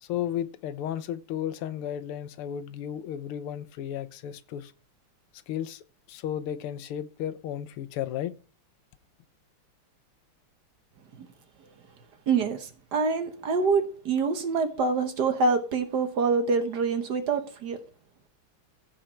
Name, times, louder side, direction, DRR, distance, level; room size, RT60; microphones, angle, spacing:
voice 1, 0.0-4.7 5.5-5.8 6.1-8.3, left 10 dB, 85° left, 1.6 m, -33 dB
voice 2, 12.3-17.8, right 4 dB, 55° right, 1.5 m, -26 dB
15.0 x 5.0 x 4.4 m
omnidirectional pair, 2.4 m